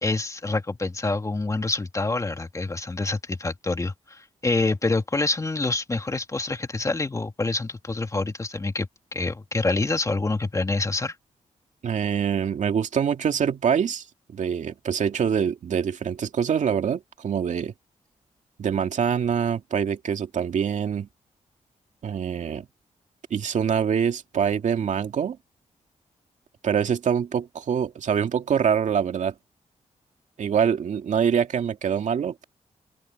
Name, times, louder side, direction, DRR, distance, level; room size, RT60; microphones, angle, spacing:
voice 1, 0.0-11.2, left 3 dB, 25° left, 2.6 m, -26 dB
voice 2, 11.8-17.7 18.6-21.1 22.0-22.7 23.3-25.4 26.6-29.3 30.4-32.4, right 7 dB, 70° right, 2.2 m, -25 dB
open air
cardioid pair, 95°, 13 cm